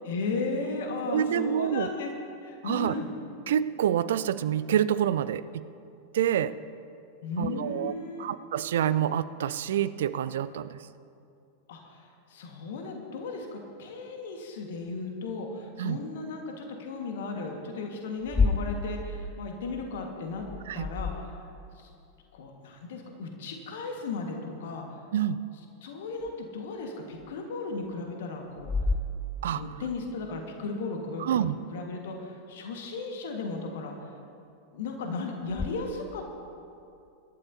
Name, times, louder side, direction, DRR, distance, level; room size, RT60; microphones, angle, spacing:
voice 1, 0.1-2.1 2.4-3.1 7.2-8.3 11.7-20.4 20.7-21.4 21.8-21.9 22.3-25.0 25.8-28.7 29.4-34.1 34.7-36.3, left 3 dB, 55° left, 2 dB, 1.6 m, -35 dB
voice 2, 1.1-1.9 2.6-2.9 3.5-5.5 6.1-6.5 7.4-7.9 8.2-10.8 15.8-16.0 20.7-20.9 25.1-25.4 29.4-29.6 31.2-31.6, right 10 dB, 60° right, 15 dB, 0.4 m, -27 dB
sound 1, 18.2-21.8 26.2-26.3 27.2-27.3 28.6-29.9 35.5-35.7, left 3 dB, 15° left, 0.5 m, -31 dB
24.0 x 12.0 x 2.8 m, 2.6 s
figure-of-eight pair, 90°, 0 cm